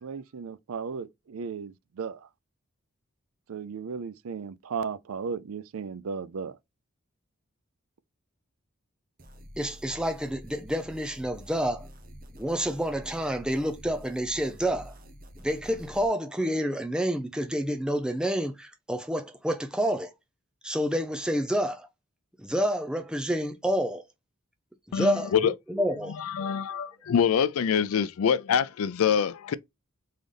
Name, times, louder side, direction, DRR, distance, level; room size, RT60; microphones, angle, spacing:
voice 1, 0.0-2.3 3.5-6.6, right 5 dB, 75° right, 0.4 m, -35 dB
sound 1, 9.2-16.1, equal, 40° right, 0.8 m, -48 dB
voice 2, 9.6-11.9 12.4-14.9 15.4-20.1 20.6-21.9 22.4-24.0 24.9-26.1, equal, 5° right, 0.5 m, -28 dB
voice 3, 24.9-25.5 26.1-29.5, left 7 dB, 80° left, 0.4 m, -25 dB
4.0 x 3.7 x 3.3 m
head